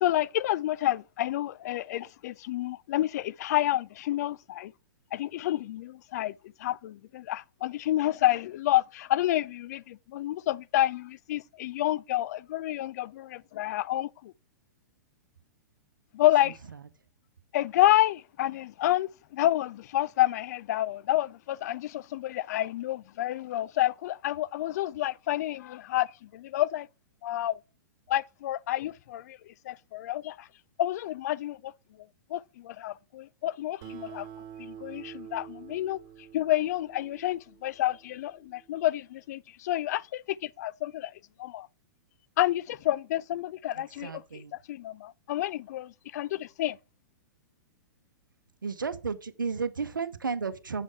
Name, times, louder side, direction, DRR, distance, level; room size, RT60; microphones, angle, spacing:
voice 1, 0.0-4.7 5.1-6.3 6.6-14.3 16.1-16.6 17.5-26.9 27.2-27.6 28.1-30.5 30.8-31.7 32.3-34.3 34.6-36.0 36.3-41.1 41.4-41.7 42.4-44.1 44.7-46.8, left 14 dB, 55° left, 0.3 m, -29 dB
voice 2, 16.4-16.8 43.7-44.5 48.6-50.8, right 5 dB, 85° right, 0.8 m, -34 dB
Acoustic guitar, 33.8-38.7, right 9 dB, 45° right, 2.2 m, -47 dB
7.7 x 5.3 x 4.7 m
hypercardioid pair, 110°, 11 cm